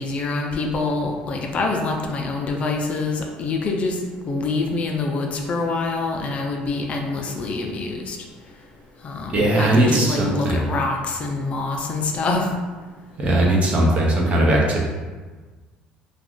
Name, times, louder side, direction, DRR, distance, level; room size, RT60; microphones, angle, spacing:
voice 1, 0.0-4.0 4.2-8.2 9.0-12.5, left 3 dB, 40° left, 2 dB, 0.4 m, -25 dB
voice 2, 9.3-10.6 13.2-14.8, right 1 dB, 40° right, -2 dB, 0.7 m, -18 dB
2.4 x 2.4 x 3.5 m, 1.4 s
supercardioid pair, 105°, 3 cm